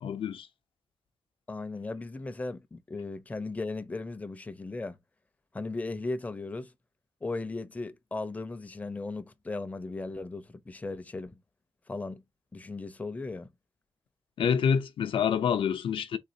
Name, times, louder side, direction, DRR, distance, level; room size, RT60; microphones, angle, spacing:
voice 1, 0.0-0.5 14.4-16.2, left 7 dB, 70° left, 0.5 m, -27 dB
voice 2, 1.5-5.0 5.5-6.7 7.2-11.3 11.9-12.2 12.5-13.5, left 3 dB, 15° left, 0.5 m, -37 dB
4.0 x 3.6 x 2.6 m
wide cardioid pair, 140°, 9 cm